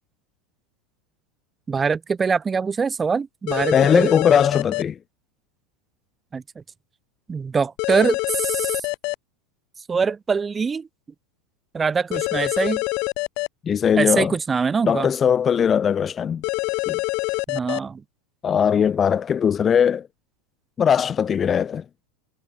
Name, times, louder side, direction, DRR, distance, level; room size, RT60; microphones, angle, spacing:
voice 1, 1.7-4.1 6.3-6.6 7.3-8.8 9.9-10.9 11.7-12.8 14.0-15.1 17.5-18.0, right 5 dB, 20° right, 3.2 m, -23 dB
sound 1, 3.5-4.8 7.8-9.1 12.1-13.5 16.4-17.8, left 30 dB, 55° left, 1.5 m, -25 dB
voice 2, 3.7-5.0 13.6-14.3 14.9-16.4 16.9-17.0 18.4-20.1 20.8-21.8, left 8 dB, 30° left, 0.9 m, -19 dB
hypercardioid pair, 95°, 0 cm